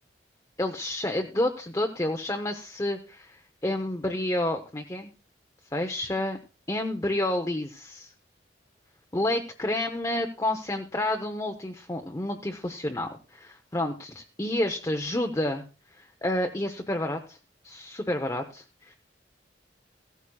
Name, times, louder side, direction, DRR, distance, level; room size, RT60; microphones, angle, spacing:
voice 1, 0.6-5.1 5.7-6.4 6.7-8.1 9.1-15.6 16.0-17.4 17.6-19.0, left 1 dB, 20° left, 3 dB, 0.7 m, -29 dB
16.0 x 13.0 x 2.3 m, 0.34 s
head